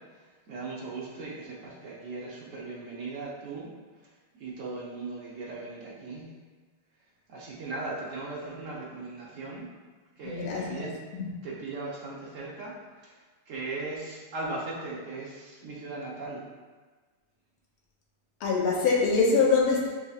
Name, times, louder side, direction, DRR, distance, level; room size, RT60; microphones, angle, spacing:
voice 1, 0.5-3.7 4.4-6.3 7.3-9.7 10.2-10.9 11.4-12.7 13.0-13.1 13.5-16.4, right 3 dB, 70° right, -5 dB, 0.7 m, -38 dB
voice 2, 10.2-11.3 18.4-19.9, left 4 dB, 85° left, -3 dB, 1.6 m, -24 dB
7.2 x 2.7 x 2.4 m, 1.4 s
omnidirectional pair, 2.3 m